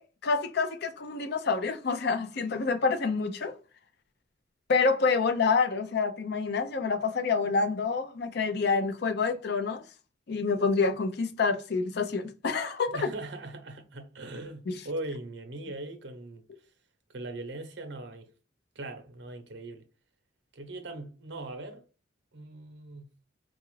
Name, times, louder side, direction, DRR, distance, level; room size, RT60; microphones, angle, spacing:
voice 1, 0.0-3.5 4.7-9.8 10.3-13.1 14.7-14.8, left 4 dB, 55° left, 0.5 m, -27 dB
voice 2, 12.9-16.4 17.1-18.3 18.7-19.8 20.5-21.8 22.3-23.1, right 2 dB, 65° right, 0.7 m, -40 dB
3.9 x 2.4 x 3.1 m
head